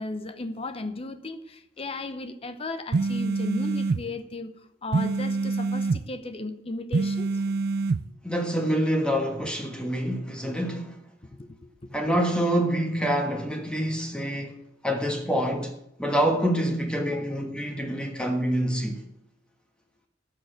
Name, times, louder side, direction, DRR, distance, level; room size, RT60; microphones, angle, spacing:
voice 1, 0.0-4.5 4.8-7.6 11.3-11.5 17.0-17.3, left 2 dB, 30° left, 0.7 m, -35 dB
sound 1, 2.9-4.0 4.9-6.0 6.9-8.0, right 3 dB, 50° right, 0.4 m, -25 dB
voice 2, 8.2-10.9 11.9-14.5 14.8-15.7 16.0-19.0, equal, 5° left, 1.4 m, -26 dB
12.0 x 6.6 x 9.1 m
head